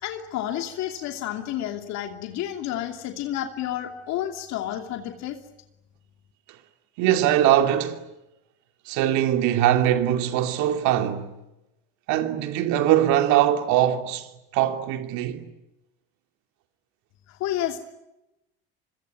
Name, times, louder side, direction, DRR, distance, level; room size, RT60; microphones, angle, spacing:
voice 1, 0.0-5.4 17.3-17.8, left 12 dB, 65° left, 2.8 m, -30 dB
voice 2, 7.0-8.0 8.9-11.3 12.1-15.5, right 11 dB, 70° right, 2.9 m, -22 dB
26.0 x 24.0 x 9.5 m
supercardioid pair, 85°, 29 cm